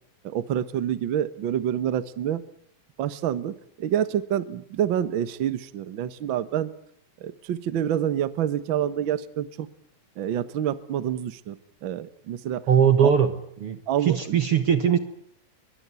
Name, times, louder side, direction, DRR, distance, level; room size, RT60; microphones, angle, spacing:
voice 1, 0.2-2.4 3.0-6.7 7.2-9.7 10.2-11.6 11.8-12.6 13.0-13.1 13.9-14.4, right 10 dB, 80° right, 13 dB, 1.1 m, -27 dB
voice 2, 12.7-15.0, right 8 dB, 55° right, 9 dB, 1.7 m, -21 dB
23.0 x 22.5 x 9.5 m, 0.69 s
omnidirectional pair, 4.1 m